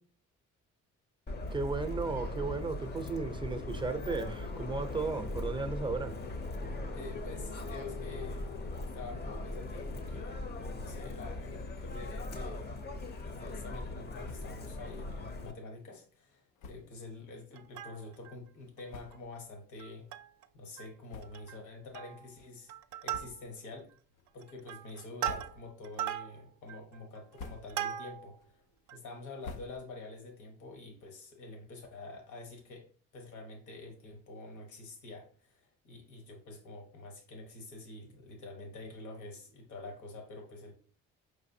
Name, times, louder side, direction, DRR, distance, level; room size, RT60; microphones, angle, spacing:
Subway metro underground, 1.3-15.5, left 2 dB, 35° left, 0.6 m, -39 dB
voice 1, 1.5-6.1, right 4 dB, 15° right, 7 dB, 0.5 m, -35 dB
voice 2, 6.9-12.7 13.2-20.1 20.5-22.7 23.0-23.9 24.3-28.6 28.9-32.9 33.1-40.7, left 2 dB, 75° left, 2 dB, 1.2 m, -47 dB
sound 1, 14.2-14.7 15.0-15.1 15.4-15.6 16.6-17.0 17.7-17.8 18.5-18.6 18.9-19.4 20.0-20.1 21.0-21.7 22.1-22.2 23.1-23.7 24.1-24.5 25.0-25.9 26.3-26.7 27.1-28.0 28.3-30.2, left 4 dB, 90° left, 0.5 m, -50 dB
Plucked string instrument, 17.5-18.3 18.8-18.9 19.1-19.3 19.8-20.4 20.8-20.9 21.2-21.6 21.9-22.3 22.7-23.7 24.3-28.4 28.9-29.0, right 11 dB, 70° right, 0.4 m, -39 dB
4.7 x 3.2 x 2.7 m, 0.43 s
cardioid pair, 90°, 30 cm